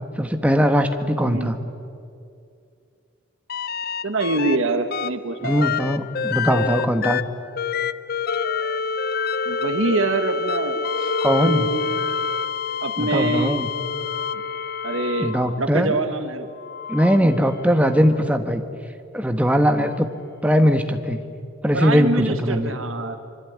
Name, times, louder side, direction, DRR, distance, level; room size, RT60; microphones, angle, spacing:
voice 1, 0.2-1.6 5.4-7.2 11.2-11.7 13.0-13.7 15.2-16.0 16.9-18.6 19.1-20.1 20.4-21.2 21.6-22.7, equal, 5° right, 6 dB, 1.4 m, -20 dB
sound 1, 3.5-4.6 4.9-15.7 16.5-18.1 19.8-19.9, left 5 dB, 45° left, 0.6 m, -27 dB
voice 2, 4.0-5.7 9.4-11.9 12.8-13.6 14.3-14.4 14.8-15.3 15.6-16.5 21.7-23.2, right 2 dB, 70° right, 8 dB, 1.4 m, -25 dB
25.0 x 24.5 x 9.5 m, 2.5 s
head